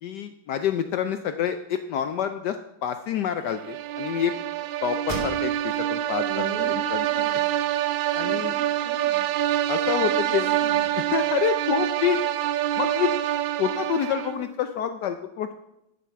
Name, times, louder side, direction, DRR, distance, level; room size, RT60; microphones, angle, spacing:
voice 1, 0.0-4.3 4.8-7.2 8.1-8.5 9.7-10.5 11.0-12.2 12.8-13.1 13.6-15.5, left 9 dB, 70° left, 9 dB, 1.1 m, -27 dB
sound 1, 3.5-14.5, right 13 dB, 75° right, 1.3 m, -26 dB
sound 2, 5.1-5.9 6.3-6.4 7.0-7.9, right 1 dB, 20° right, 2.5 m, -38 dB
voice 2, 6.3-7.5 8.1-9.3 9.9-11.1, right 3 dB, 45° right, 7 dB, 1.3 m, -40 dB
12.0 x 7.4 x 5.7 m, 0.83 s
omnidirectional pair, 2.1 m